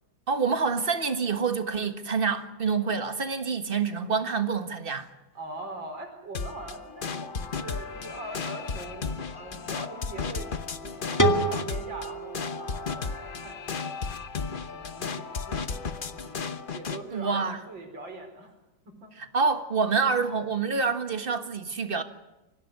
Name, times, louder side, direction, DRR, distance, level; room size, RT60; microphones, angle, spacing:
voice 1, 0.3-5.1 17.1-17.6 19.2-22.0, right 5 dB, 30° right, 1.5 m, -27 dB
voice 2, 5.4-10.5 10.8-14.0 14.7-16.5 16.7-18.5 18.9-19.1, right 2 dB, 85° right, 5.4 m, -42 dB
sound 1, 6.3-17.0, left 5 dB, 40° left, 0.9 m, -34 dB
sound 2, 11.2-14.0, right 1 dB, 10° left, 1.7 m, -29 dB
25.0 x 17.0 x 9.6 m
omnidirectional pair, 2.0 m